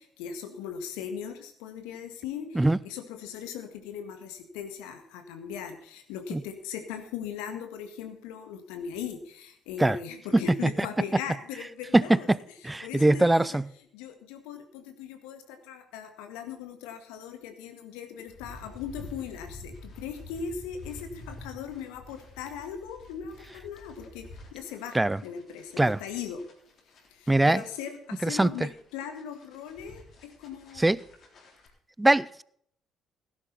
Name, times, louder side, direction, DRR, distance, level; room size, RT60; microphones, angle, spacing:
voice 1, 0.0-12.3 12.6-13.6 13.9-25.0 25.2-26.4 27.1-30.0 30.4-30.8, left 7 dB, 75° left, 1.8 m, -39 dB
voice 2, 11.9-12.4 12.6-13.6 24.9-25.2 25.8-26.0 27.3-27.6 28.2-28.5 30.8-31.0 32.0-32.4, right 2 dB, 15° right, 0.5 m, -21 dB
sound 1, 18.3-31.7, left 2 dB, 55° left, 3.9 m, -49 dB
17.0 x 10.5 x 4.1 m
hypercardioid pair, 50°, 0 cm